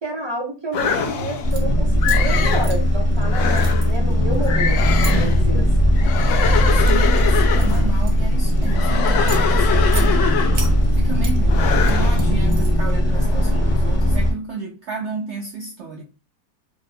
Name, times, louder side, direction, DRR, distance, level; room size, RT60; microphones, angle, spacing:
voice 1, 0.0-5.9, right 2 dB, 35° right, 0.4 m, -30 dB
sound 1, 0.7-1.5 2.0-2.7 3.2-3.9 4.5-5.4 6.0-7.9 8.7-10.8 11.5-12.3, left 7 dB, 75° left, 0.7 m, -23 dB
sound 2, 1.3-1.6 2.0-3.2 3.5-5.1 5.8-6.1 6.6-8.7 9.1-10.1 10.5-11.4 11.7-12.9, right 5 dB, 65° right, 1.0 m, -36 dB
sound 3, 1.4-14.3, equal, 40° left, 0.7 m, -18 dB
voice 2, 5.1-5.7 6.7-10.2 10.9-16.0, right 4 dB, 80° right, 0.6 m, -32 dB
2.9 x 2.1 x 4.1 m
omnidirectional pair, 1.8 m